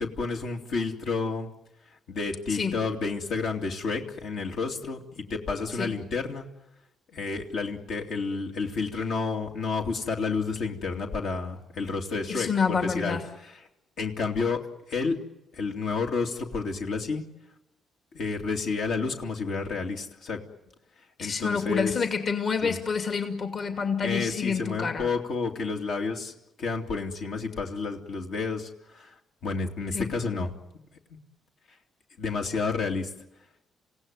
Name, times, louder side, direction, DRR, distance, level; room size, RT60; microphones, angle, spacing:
voice 1, 0.0-1.5 2.1-6.4 7.1-13.2 13.4-13.5 14.0-14.6 14.9-15.2 15.5-17.2 18.1-20.4 21.2-21.9 22.6-22.8 24.0-26.3 26.6-29.1 29.4-30.5 32.2-33.1, left 4 dB, 70° left, 2 dB, 2.7 m, -30 dB
voice 2, 12.3-13.2 21.2-25.1 29.9-30.1, left 5 dB, 50° left, 5 dB, 2.5 m, -28 dB
27.5 x 17.0 x 9.5 m, 0.90 s
cardioid pair, 90°, 0 cm